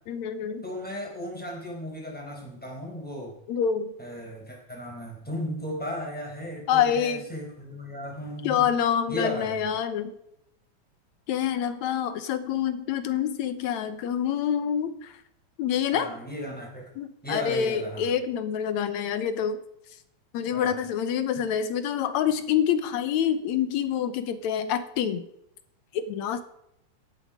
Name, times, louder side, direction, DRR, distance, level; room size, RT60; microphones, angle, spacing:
voice 1, 0.1-0.6 3.5-3.9 6.7-7.2 8.4-10.1 11.3-15.1 15.6-16.1 17.0-19.6 20.3-25.3 25.9-26.4, left 8 dB, 75° left, 11 dB, 2.2 m, -26 dB
voice 2, 0.6-3.3 4.0-8.7 9.1-9.7 15.9-16.9 17.2-18.1 20.5-20.8, equal, 5° left, -2 dB, 4.1 m, -35 dB
17.0 x 9.3 x 5.0 m, 0.77 s
omnidirectional pair, 3.5 m